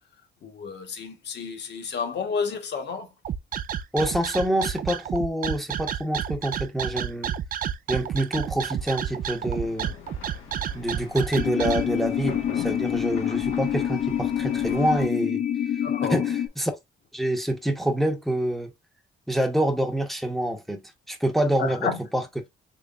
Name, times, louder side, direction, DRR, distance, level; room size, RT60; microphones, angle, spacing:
voice 1, 0.4-3.1 15.8-16.2 21.6-22.0, left 5 dB, 60° left, 1.3 m, -30 dB
sound 1, 3.2-11.8, right 9 dB, 45° right, 0.4 m, -30 dB
voice 2, 3.9-7.3 7.9-9.9 10.7-15.4 16.1-16.7 17.1-18.7 19.3-20.8 21.1-22.2, right 1 dB, ahead, 0.9 m, -26 dB
sound 2, 8.4-15.0, left 6 dB, 85° left, 1.5 m, -41 dB
sound 3, 11.3-16.5, left 10 dB, 35° left, 0.5 m, -26 dB
3.7 x 3.2 x 2.5 m
cardioid pair, 90°, 20 cm